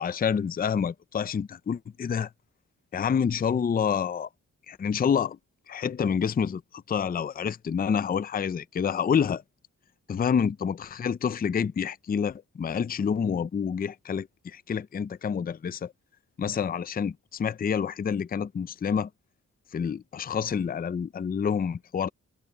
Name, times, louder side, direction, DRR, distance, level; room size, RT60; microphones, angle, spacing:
voice 1, 0.0-2.3 2.9-4.3 4.7-5.4 5.7-9.4 10.1-15.9 16.4-19.1 19.7-22.1, left 7 dB, 30° left, 0.4 m, -28 dB
wide cardioid pair, 125°, 32 cm